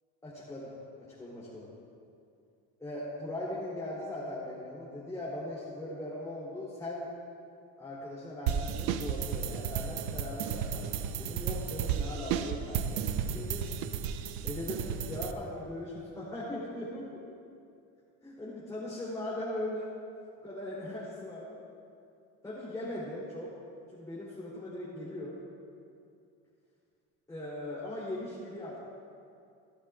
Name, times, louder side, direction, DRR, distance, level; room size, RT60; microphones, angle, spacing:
voice 1, 0.2-0.7 1.2-1.7 2.8-7.1 7.8-10.8 11.2-13.7 14.4-17.2 18.2-19.9 20.4-21.6 22.4-23.5 23.9-25.3 27.3-28.8, left 1 dB, 10° left, -8 dB, 3.1 m, -39 dB
sound 1, 8.5-15.3, right 8 dB, 80° right, 0.8 m, -33 dB
26.0 x 11.5 x 2.4 m, 2.5 s
cardioid pair, 130°, 31 cm